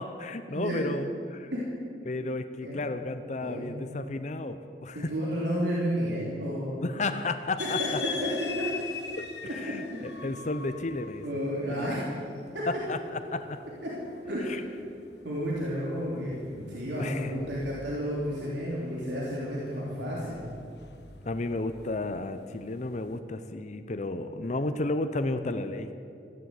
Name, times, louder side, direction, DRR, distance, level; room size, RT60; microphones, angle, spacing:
voice 1, 0.0-1.5 2.0-5.1 6.8-8.0 9.2-11.2 11.7-12.0 12.7-13.6 14.5-14.6 17.0-17.3 21.2-25.9, left 2 dB, 40° left, 9 dB, 0.6 m, -33 dB
voice 2, 3.4-3.7 4.9-6.8 7.8-8.6 9.4-10.2 11.2-12.0 12.5-12.6 13.8-13.9 14.3-14.6 15.2-20.4, equal, 85° right, -6 dB, 3.2 m, -32 dB
sound 1, 7.6-23.2, left 7 dB, 70° left, 1.1 m, -43 dB
14.5 x 11.5 x 8.2 m, 2.4 s
head